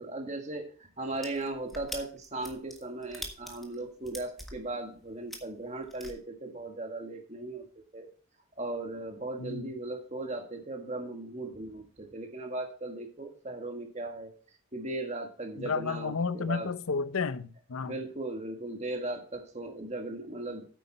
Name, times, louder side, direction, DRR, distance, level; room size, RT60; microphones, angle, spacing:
voice 1, 0.0-7.6 7.9-8.1 8.6-14.3 14.7-16.7 17.8-20.6, right 2 dB, 35° right, 1.6 m, -37 dB
sound 1, 1.1-6.1, equal, ahead, 1.5 m, -43 dB
voice 2, 9.4-9.7 15.6-18.0, left 4 dB, 85° left, 0.7 m, -32 dB
9.3 x 8.4 x 4.2 m
head